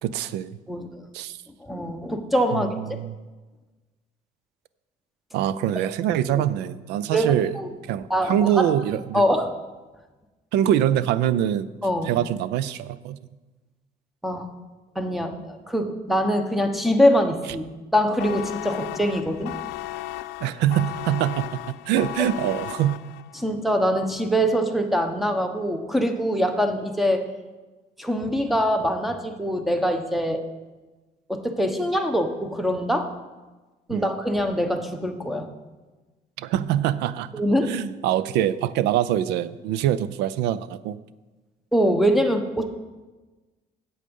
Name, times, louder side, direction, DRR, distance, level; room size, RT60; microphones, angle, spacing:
voice 1, 0.0-0.6 1.1-1.4 2.5-3.2 5.3-7.5 7.9-9.2 10.5-11.7 12.0-13.2 20.4-23.0 33.9-34.1 36.4-37.3 37.6-41.0, right 11 dB, 90° right, 16 dB, 0.5 m, -24 dB
voice 2, 0.7-1.0 1.6-2.7 6.3-6.4 7.1-7.7 8.1-8.7 9.1-9.5 11.8-12.1 14.2-14.5 14.9-17.6 17.9-19.5 23.3-27.3 28.0-30.4 31.3-33.1 33.9-35.5 37.3-37.8 41.7-42.7, equal, ahead, 6 dB, 1.0 m, -23 dB
sound 1, 18.2-23.4, left 16 dB, 90° left, 0.4 m, -35 dB
8.4 x 7.9 x 5.4 m, 1.2 s
cardioid pair, 110°, 17 cm